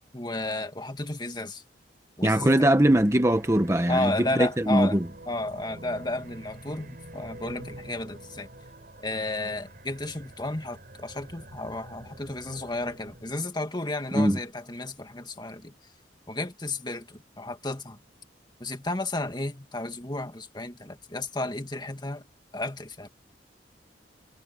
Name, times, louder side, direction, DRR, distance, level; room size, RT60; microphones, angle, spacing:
voice 1, 0.1-1.6 2.2-2.7 3.9-8.5 9.0-15.7 16.3-18.0 18.6-22.3 22.5-23.1, left 2 dB, 25° left, 2.0 m, -33 dB
voice 2, 2.2-5.0 14.1-14.4, right 1 dB, 15° right, 1.2 m, -21 dB
sound 1, 2.6-13.4, right 1 dB, 50° right, 6.9 m, -47 dB
head